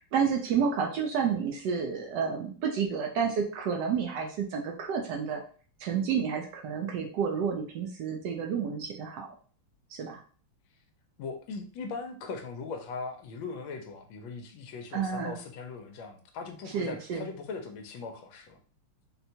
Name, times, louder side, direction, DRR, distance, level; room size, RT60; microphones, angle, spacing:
voice 1, 0.0-5.4 5.8-9.3 9.9-10.2 14.9-15.4 16.7-17.3, right 6 dB, 75° right, 1 dB, 0.9 m, -30 dB
voice 2, 11.2-18.6, left 4 dB, 75° left, 4 dB, 1.3 m, -39 dB
4.3 x 2.2 x 2.7 m, 0.42 s
omnidirectional pair, 2.4 m